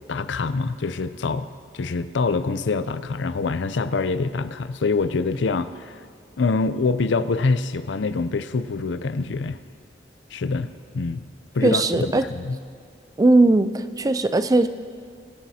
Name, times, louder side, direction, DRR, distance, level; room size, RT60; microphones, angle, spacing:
voice 1, 0.1-1.5 1.7-6.0 6.4-9.6 10.3-11.2 11.5-12.6, left 4 dB, 90° left, 13 dB, 0.5 m, -25 dB
voice 2, 11.6-12.3 13.2-14.7, right 2 dB, 20° right, 12 dB, 0.4 m, -18 dB
22.0 x 11.5 x 2.8 m, 2.2 s
head